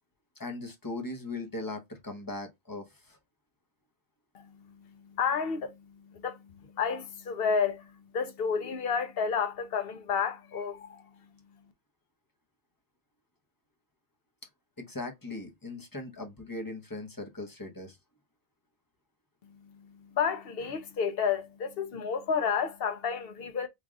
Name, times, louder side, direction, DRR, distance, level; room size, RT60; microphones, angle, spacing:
voice 1, 0.4-3.2 14.8-18.0, left 2 dB, 20° left, 0.7 m, -39 dB
voice 2, 4.3-11.6 19.4-23.7, left 6 dB, 65° left, 0.8 m, -31 dB
3.3 x 2.4 x 3.6 m
omnidirectional pair, 1.1 m